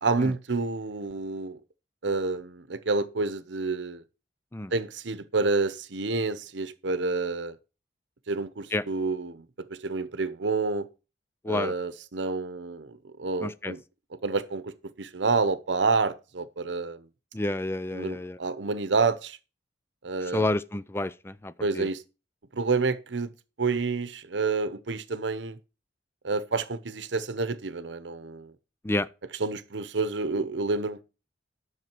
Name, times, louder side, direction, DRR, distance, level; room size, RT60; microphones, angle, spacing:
voice 1, 0.0-1.6 2.0-4.0 4.7-7.5 8.3-10.9 11.5-13.8 14.1-17.1 17.9-19.4 20.0-20.5 21.6-22.0 22.5-23.3 23.6-25.6 26.2-28.5 29.3-31.0, right 3 dB, 85° right, 0.8 m, -29 dB
voice 2, 13.4-13.7 17.3-18.4 20.3-21.9 28.8-29.1, left 2 dB, 15° left, 0.4 m, -29 dB
11.0 x 6.3 x 4.5 m
head